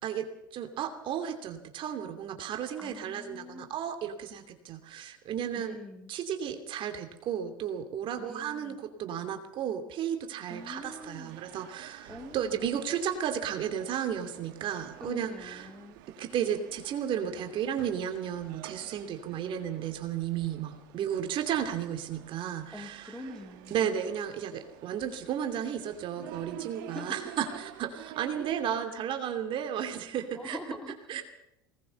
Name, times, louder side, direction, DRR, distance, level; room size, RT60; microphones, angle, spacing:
voice 1, 0.0-5.8 6.1-15.7 16.2-23.2 23.7-30.6 31.1-31.2, right 9 dB, 50° right, 6 dB, 2.7 m, -33 dB
voice 2, 2.8-3.7 5.5-6.1 8.2-8.8 10.5-11.3 12.1-12.6 15.0-16.0 22.7-23.9 26.9-27.2 28.9-29.0 30.4-31.0, left 1 dB, 5° left, 4 dB, 3.5 m, -44 dB
sound 1, 10.5-28.9, right 13 dB, 70° right, 2.0 m, -49 dB
20.5 x 19.0 x 6.9 m, 0.82 s
hypercardioid pair, 90°, 11 cm